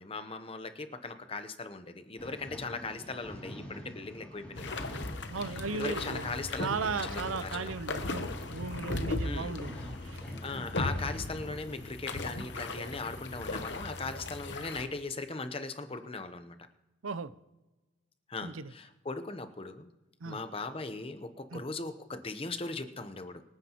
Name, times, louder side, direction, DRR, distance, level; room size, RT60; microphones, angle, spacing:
voice 1, 0.0-5.1 5.7-7.7 9.2-9.9 10.4-16.6 18.3-19.9 20.2-23.4, left 3 dB, 30° left, 9 dB, 0.8 m, -39 dB
sound 1, 2.2-13.4, equal, 5° left, 2.7 m, -47 dB
sound 2, 4.6-14.9, left 2 dB, 60° left, 0.9 m, -37 dB
voice 2, 5.3-6.3 6.6-10.2 17.0-17.3 18.4-18.7 20.2-20.4 21.5-21.6, right 4 dB, 85° right, 15 dB, 0.6 m, -36 dB
24.5 x 9.6 x 3.0 m, 1.1 s
head